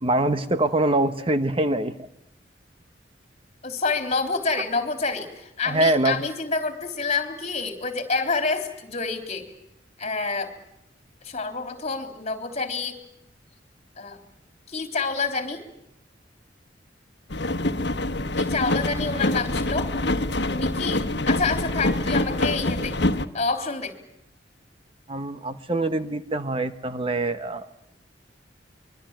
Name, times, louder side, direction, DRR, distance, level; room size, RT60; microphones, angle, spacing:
voice 1, 0.0-2.1 5.7-6.2 25.1-27.7, right 2 dB, 30° right, 10 dB, 1.1 m, -24 dB
voice 2, 3.6-9.5 10.0-10.5 11.2-13.0 14.0-14.2 14.7-15.6 18.4-19.9 20.4-22.9 23.3-23.9, left 4 dB, 40° left, 6 dB, 3.7 m, -28 dB
sound 1, 17.3-23.3, left 2 dB, 65° left, 1.4 m, -25 dB
25.0 x 23.0 x 9.1 m, 0.83 s
head